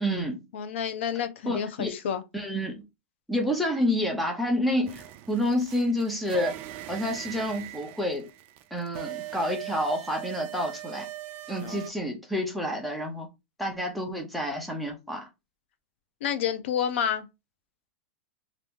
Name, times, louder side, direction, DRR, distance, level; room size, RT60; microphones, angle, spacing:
voice 1, 0.0-0.4 1.5-1.9 2.3-2.8 3.3-6.5 6.9-8.3 8.7-11.1 11.5-13.3 13.6-15.3, equal, ahead, 0.7 m, -29 dB
voice 2, 0.5-2.2 11.6-11.8 16.2-17.3, left 8 dB, 70° left, 0.6 m, -29 dB
sound 1, 4.9-11.9, right 15 dB, 30° right, 0.3 m, -40 dB
2.8 x 2.5 x 3.5 m
supercardioid pair, 160°, 7 cm